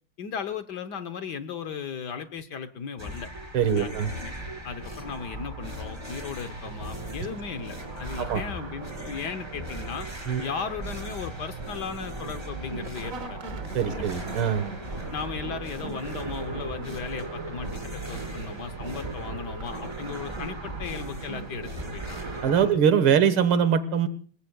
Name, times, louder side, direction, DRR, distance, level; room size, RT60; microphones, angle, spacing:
voice 1, 0.2-3.3 3.8-3.9 4.2-4.3 4.6-10.1 10.4-13.4 13.9-14.0 15.1-22.2 22.6-22.8, left 6 dB, 60° left, 9 dB, 1.4 m, -36 dB
sound 1, 3.0-22.7, right 1 dB, 10° right, 3.0 m, -38 dB
voice 2, 3.5-4.1 8.2-8.4 10.3-10.4 13.7-14.7 22.4-24.1, right 8 dB, 80° right, 13 dB, 2.2 m, -22 dB
sound 2, 3.7-22.7, right 4 dB, 45° right, 1.6 m, -41 dB
29.5 x 20.5 x 2.3 m, 0.43 s
omnidirectional pair, 2.3 m